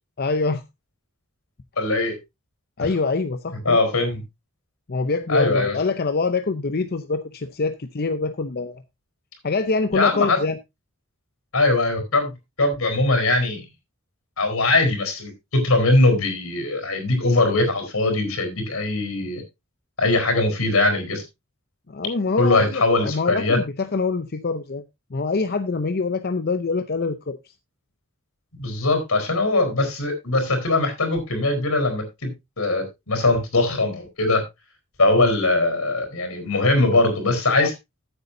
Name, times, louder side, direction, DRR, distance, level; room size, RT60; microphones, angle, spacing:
voice 1, 0.2-0.6 2.8-3.8 4.9-8.8 9.4-10.6 21.9-24.8 25.1-27.4 37.6-37.7, left 4 dB, 50° left, 0.6 m, -25 dB
voice 2, 1.8-2.1 3.6-4.2 5.3-5.8 9.9-10.4 11.5-12.3 12.6-13.6 14.4-19.4 20.0-21.2 22.4-23.6 28.6-34.4 35.0-37.7, left 2 dB, 85° left, 4.3 m, -21 dB
14.5 x 8.1 x 2.7 m
head